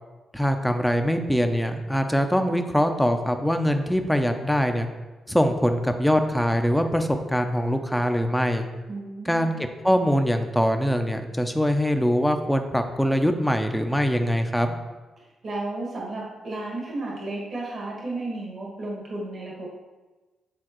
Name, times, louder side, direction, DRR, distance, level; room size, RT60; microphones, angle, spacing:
voice 1, 0.3-4.9 5.3-8.7 9.2-9.5 9.8-14.8, equal, 5° left, 6 dB, 0.7 m, -23 dB
voice 2, 8.9-9.5 15.4-19.7, right 2 dB, 55° right, -3 dB, 1.6 m, -33 dB
8.6 x 3.7 x 3.0 m, 1.2 s
cardioid pair, 70°, 0 cm